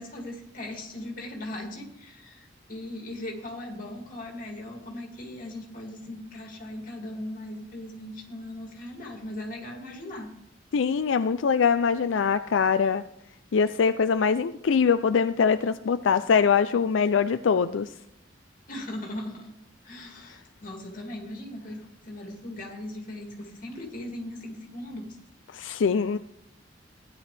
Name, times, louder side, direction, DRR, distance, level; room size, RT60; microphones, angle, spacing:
voice 1, 0.0-10.3 18.7-19.5 19.8-25.1, left 1 dB, 45° left, 1 dB, 2.5 m, -39 dB
voice 2, 10.7-13.0 13.5-17.9 25.5-26.2, left 6 dB, 85° left, 10 dB, 0.4 m, -23 dB
16.0 x 10.5 x 3.4 m, 0.77 s
head